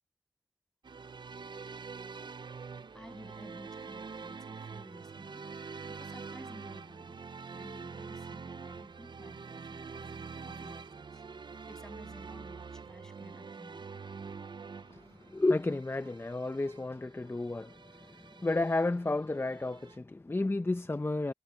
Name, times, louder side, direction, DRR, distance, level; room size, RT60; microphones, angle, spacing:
sound 1, 0.8-20.0, right 5 dB, 90° right, 0.5 m, -46 dB
voice 1, 2.9-5.5 5.9-7.2 7.5-13.9, equal, 5° left, 7.3 m, -53 dB
voice 2, 14.8-21.3, left 2 dB, 30° left, 0.6 m, -32 dB
wide cardioid pair, 45°, 8 cm